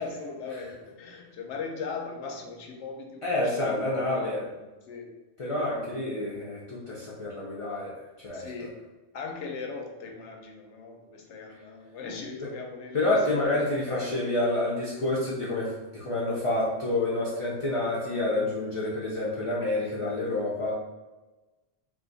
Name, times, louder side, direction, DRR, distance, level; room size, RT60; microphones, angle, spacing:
voice 1, 0.0-4.4 4.8-5.1 8.3-8.8 9.1-14.2, left 4 dB, 75° left, 2 dB, 0.9 m, -39 dB
voice 2, 3.2-4.5 5.4-7.9 8.2-8.5 12.9-20.7, left 2 dB, 45° left, -6 dB, 0.4 m, -28 dB
2.6 x 2.4 x 3.8 m, 1.2 s
omnidirectional pair, 1.2 m